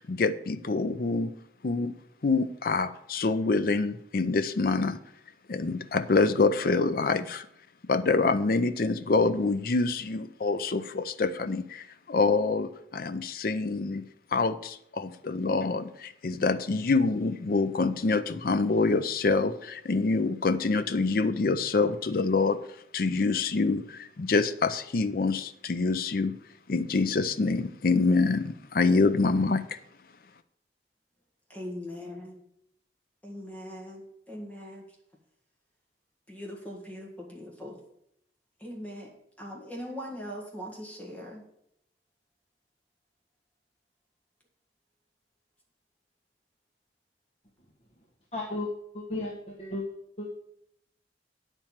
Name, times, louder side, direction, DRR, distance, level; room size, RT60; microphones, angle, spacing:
voice 1, 0.0-1.3 1.6-1.9 2.2-5.0 5.5-7.5 7.8-14.0 14.3-22.6 22.9-26.4 26.7-29.8, left 3 dB, 55° left, 11 dB, 0.5 m, -26 dB
voice 2, 31.5-32.4 33.2-34.9 36.3-37.8 38.6-39.1 39.4-41.4, equal, 10° left, -2 dB, 1.7 m, -40 dB
voice 3, 48.3-48.7 48.9-49.8 50.2-50.3, left 2 dB, 35° left, -3 dB, 1.3 m, -34 dB
8.9 x 4.5 x 7.3 m, 0.74 s
head